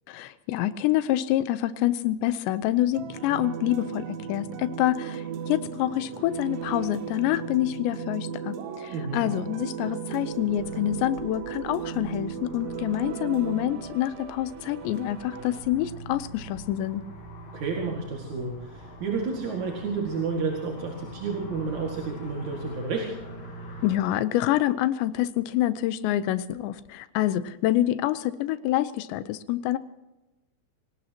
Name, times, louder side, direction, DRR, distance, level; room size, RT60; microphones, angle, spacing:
voice 1, 0.1-17.0 23.8-29.8, left 13 dB, 80° left, 13 dB, 3.0 m, -27 dB
sound 1, 2.9-15.6, right 7 dB, 85° right, 3.4 m, -36 dB
voice 2, 8.9-9.3 17.5-23.1, right 4 dB, 50° right, 0 dB, 2.9 m, -31 dB
sound 2, 10.3-24.0, right 1 dB, 50° left, 5.4 m, -44 dB
25.0 x 18.5 x 3.0 m, 1.0 s
omnidirectional pair, 5.3 m